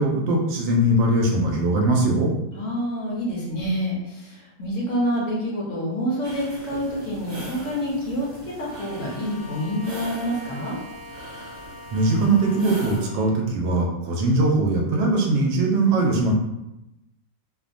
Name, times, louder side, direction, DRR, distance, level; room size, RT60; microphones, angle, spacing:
voice 1, 0.0-2.3 11.9-16.3, right 2 dB, 85° right, 0 dB, 1.3 m, -21 dB
voice 2, 2.5-10.8, equal, 60° left, -4 dB, 0.8 m, -27 dB
sound 1, 6.2-13.0, right 2 dB, 50° right, 0.7 m, -41 dB
Bowed string instrument, 8.6-13.5, left 2 dB, 70° right, 1.2 m, -42 dB
3.1 x 2.1 x 2.5 m, 0.91 s
omnidirectional pair, 1.9 m